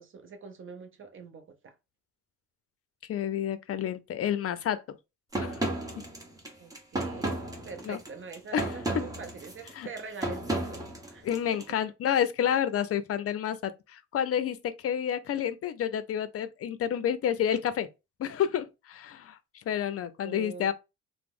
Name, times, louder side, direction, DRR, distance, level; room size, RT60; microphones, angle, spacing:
voice 1, 0.0-1.7 6.6-10.8 11.1-11.6 20.2-20.7, right 5 dB, 45° right, 0.6 m, -44 dB
voice 2, 3.1-4.8 5.4-5.6 7.8-8.0 8.5-9.0 9.7-9.9 11.2-17.9 18.2-20.7, left 9 dB, 50° left, 0.5 m, -29 dB
sound 1, 5.3-11.7, right 1 dB, 10° right, 1.0 m, -34 dB
2.9 x 2.1 x 3.6 m
cardioid pair, 90°, 30 cm